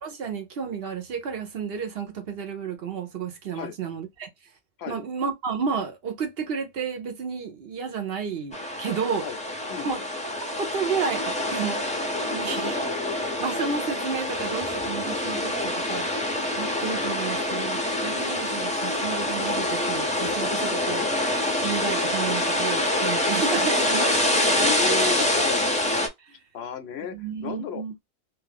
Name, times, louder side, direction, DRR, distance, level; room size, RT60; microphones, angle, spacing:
voice 1, 0.0-4.3 4.9-9.2 9.8-10.0 10.6-11.8 12.3-12.8 13.2-16.1 16.6-21.0 21.6-25.1 26.3-26.4 27.1-27.9, right 6 dB, 65° right, 1.0 m, -32 dB
sound 1, 8.5-26.1, left 1 dB, 10° left, 0.4 m, -26 dB
voice 2, 20.6-21.1 24.6-25.7 26.5-27.1 27.4-27.8, left 8 dB, 75° left, 0.8 m, -33 dB
2.5 x 2.4 x 3.3 m
omnidirectional pair, 1.1 m